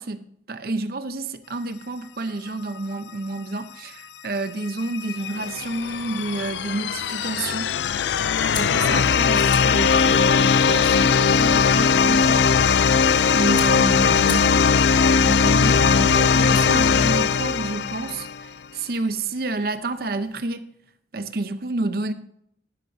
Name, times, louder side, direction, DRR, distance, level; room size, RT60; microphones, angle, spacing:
voice 1, 0.0-7.7 8.5-12.4 13.3-14.6 15.2-20.7 21.1-22.1, right 2 dB, 55° right, 0.7 m, -29 dB
sound 1, 4.6-18.4, left 6 dB, 75° left, 0.4 m, -19 dB
sound 2, 8.5-17.0, left 4 dB, 25° left, 1.2 m, -42 dB
12.0 x 10.5 x 2.7 m
head